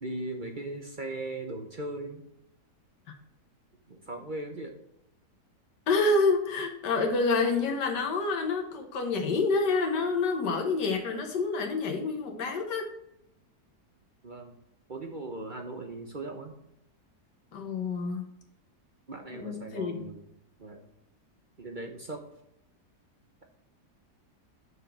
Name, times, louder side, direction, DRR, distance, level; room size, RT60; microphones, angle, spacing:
voice 1, 0.0-2.2 3.9-4.8 14.2-14.6 14.9-16.6 19.1-20.2 20.6-20.9 21.6-22.2, right 2 dB, 40° right, 3 dB, 0.8 m, -38 dB
voice 2, 5.9-12.9 17.5-18.3 19.3-20.1, left 3 dB, 85° left, 2 dB, 1.8 m, -28 dB
6.4 x 5.1 x 5.9 m, 0.79 s
omnidirectional pair, 1.8 m